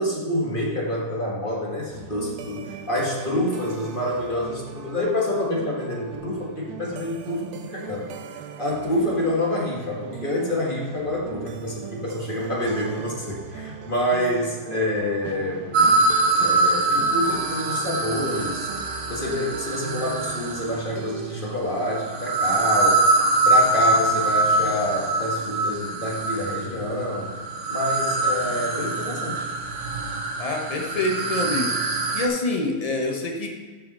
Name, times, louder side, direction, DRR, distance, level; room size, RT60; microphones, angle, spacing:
voice 1, 0.0-15.9 16.4-23.0 23.4-27.3 27.7-29.5, left 1 dB, 25° left, -3 dB, 1.7 m, -27 dB
sound 1, 1.9-21.6, right 8 dB, 90° right, 1.5 m, -39 dB
sound 2, 15.7-21.0 21.8-32.3, right 2 dB, 50° right, 1.0 m, -23 dB
voice 2, 30.4-31.8 32.1-33.5, left 2 dB, 50° left, 2 dB, 0.4 m, -26 dB
13.0 x 5.7 x 4.2 m, 1.5 s
omnidirectional pair, 2.2 m